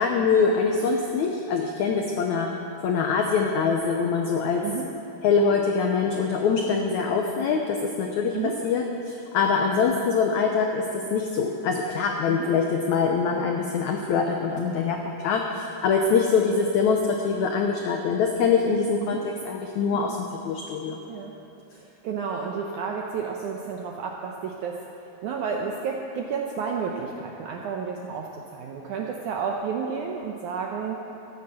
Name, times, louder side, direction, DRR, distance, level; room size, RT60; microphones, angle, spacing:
voice 1, 0.0-2.5 2.8-4.6 5.2-8.4 8.6-20.2 20.4-21.0, left 5 dB, 90° left, 2 dB, 1.6 m, -24 dB
voice 2, 21.7-31.1, right 6 dB, 80° right, 1 dB, 1.8 m, -31 dB
14.0 x 10.0 x 7.7 m, 2.8 s
omnidirectional pair, 4.5 m